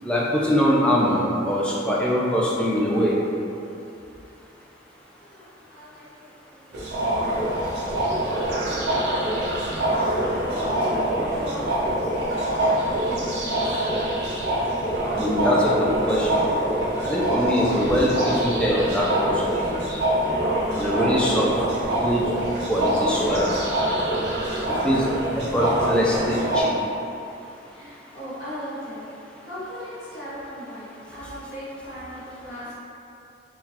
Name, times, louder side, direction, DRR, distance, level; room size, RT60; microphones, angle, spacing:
voice 1, 0.0-3.1 15.1-16.5 17.0-20.0 20.8-21.5 22.0-22.2 22.7-23.5 24.8-25.1 25.4-26.7, equal, 5° left, -5 dB, 0.4 m, -23 dB
voice 2, 5.2-7.1 7.4-13.8 27.7-29.0 29.4-32.7, equal, 70° left, -11 dB, 1.4 m, -38 dB
sound 1, 6.7-26.6, right 1 dB, 65° right, 0.7 m, -25 dB
3.7 x 2.3 x 2.9 m, 2.7 s
head